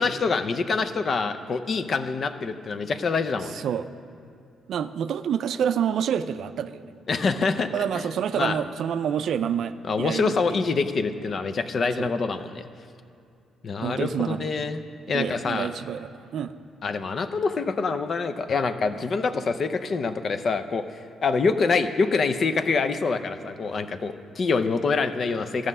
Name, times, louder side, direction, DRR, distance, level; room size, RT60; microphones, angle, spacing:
voice 1, 0.0-3.6 7.1-7.7 8.4-8.6 9.9-12.7 13.6-14.8 15.1-15.7 16.8-25.7, left 4 dB, 45° left, 10 dB, 0.6 m, -25 dB
voice 2, 4.7-6.8 7.7-10.6 12.0-12.1 13.8-14.5 15.1-16.5, right 8 dB, 70° right, 11 dB, 0.4 m, -28 dB
13.5 x 6.3 x 5.4 m, 2.5 s
cardioid pair, 90°, 0 cm